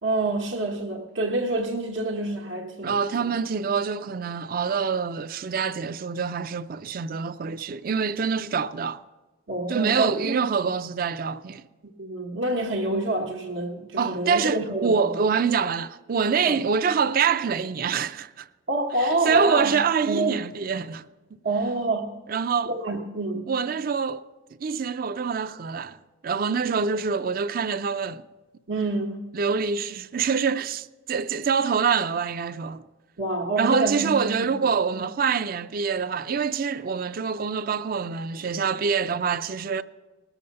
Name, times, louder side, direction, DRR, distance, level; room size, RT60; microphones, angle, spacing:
voice 1, 0.0-3.3 3.6-3.7 9.5-10.3 12.0-15.2 16.4-16.6 18.7-19.8 20.0-20.4 21.4-22.2 22.7-23.5 28.7-29.3 33.2-34.5, right 2 dB, 85° right, 1.2 m, -27 dB
voice 2, 2.8-9.0 9.7-11.6 14.0-18.5 19.0-21.0 21.3-21.4 22.3-22.7 23.5-24.3 24.6-28.3 29.3-32.8 33.6-39.8, right 6 dB, 45° right, 0.4 m, -25 dB
20.0 x 7.1 x 5.3 m
head